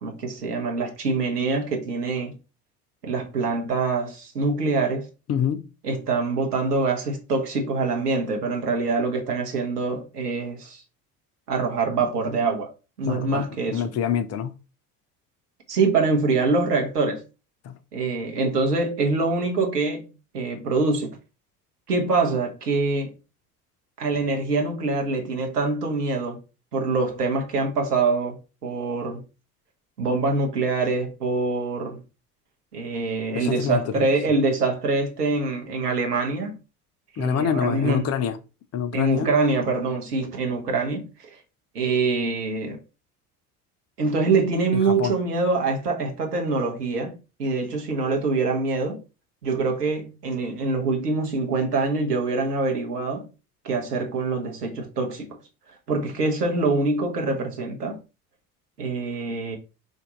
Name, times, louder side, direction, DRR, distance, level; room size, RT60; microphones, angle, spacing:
voice 1, 0.0-2.3 3.0-5.1 5.8-10.8 11.5-12.7 13.0-13.8 15.7-17.2 17.9-21.2 21.9-23.1 24.0-26.4 26.7-29.2 30.0-32.0 32.7-36.6 37.2-38.0 38.9-41.3 41.7-42.8 44.0-49.0 49.4-53.3 53.6-55.4 55.9-58.0 58.8-59.6, right 3 dB, 80° right, 1.2 m, -24 dB
voice 2, 5.3-5.7 13.1-14.5 17.6-17.8 33.3-34.1 37.2-38.4 38.7-39.3 44.7-45.1, left 8 dB, 35° left, 0.7 m, -26 dB
5.2 x 2.7 x 3.7 m
figure-of-eight pair, 65°, 47 cm